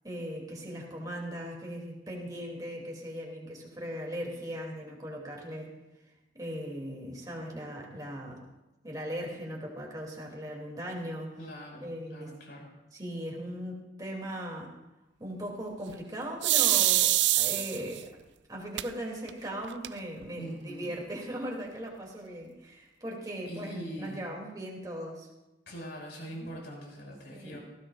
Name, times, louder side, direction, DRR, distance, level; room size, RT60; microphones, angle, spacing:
voice 1, 0.0-5.7 6.3-8.4 8.8-11.3 11.8-12.3 12.9-14.7 15.2-18.1 18.5-25.3 26.4-26.5 27.1-27.6, equal, 20° right, -2 dB, 2.6 m, -39 dB
voice 2, 11.4-12.7 20.3-20.9 23.4-24.3 25.7-27.6, equal, 70° left, -1 dB, 5.3 m, -42 dB
sound 1, 16.4-18.0 18.8-18.9 19.3-19.4 19.6-20.2, right 15 dB, 75° right, 0.4 m, -24 dB
18.5 x 15.5 x 2.4 m, 1.0 s
head